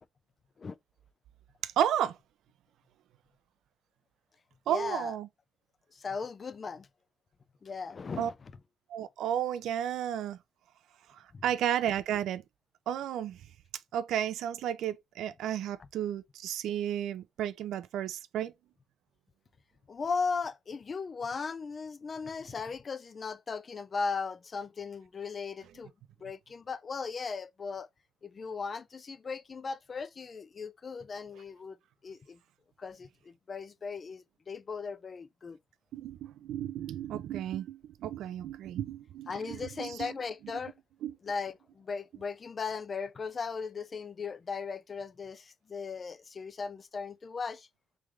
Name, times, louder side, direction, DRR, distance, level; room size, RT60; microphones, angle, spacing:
voice 1, 1.6-2.2 4.7-5.3 8.2-8.3 8.9-10.4 11.1-12.4 12.9-13.4 13.9-18.5 35.9-40.1 41.0-41.2, right 10 dB, 80° right, 0.4 m, -33 dB
voice 2, 4.7-5.1 6.0-6.9 7.6-8.3 11.3-11.4 19.9-25.9 26.2-27.9 28.2-31.8 32.0-32.4 32.8-35.6 39.3-40.7 41.2-47.7, left 5 dB, 40° left, 0.4 m, -37 dB
3.6 x 3.3 x 3.1 m
cardioid pair, 90°, 0 cm